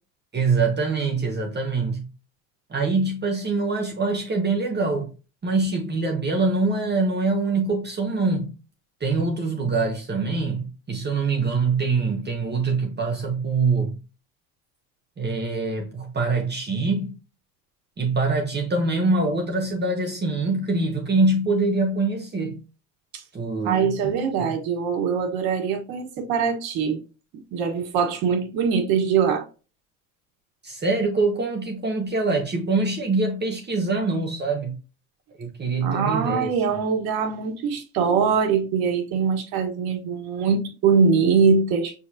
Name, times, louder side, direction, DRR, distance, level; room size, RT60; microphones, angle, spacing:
voice 1, 0.3-2.1 2.7-5.1 5.4-8.5 9.0-14.0 15.2-17.2 18.0-22.6 23.3-23.9 24.4-24.5 30.6-34.8 35.4-36.5, right 3 dB, 25° right, 0.9 m, -24 dB
voice 2, 23.6-27.0 27.5-29.4 35.8-42.0, right 6 dB, 60° right, 1.4 m, -22 dB
5.7 x 2.9 x 2.7 m
hypercardioid pair, 80°, 41 cm